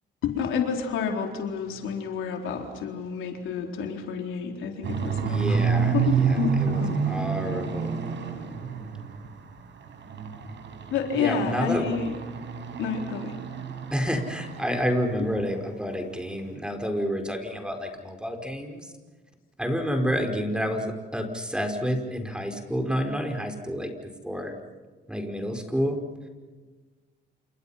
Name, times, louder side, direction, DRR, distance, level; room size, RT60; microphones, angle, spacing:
voice 1, 0.2-7.0 10.9-12.2 12.8-13.3 15.2-15.3, left 6 dB, 85° left, 2 dB, 4.1 m, -29 dB
sound 1, 4.8-9.4 9.8-15.0 15.3-15.6 15.9-16.0 16.4-16.5, right 6 dB, 65° right, 5.3 m, -29 dB
voice 2, 5.3-6.8 7.1-7.9 11.1-11.9 13.9-18.9 19.6-23.9 24.2-24.5 25.1-26.0, equal, 5° right, 4 dB, 5.1 m, -29 dB
29.0 x 28.0 x 5.8 m, 1.4 s
cardioid pair, 90°, 20 cm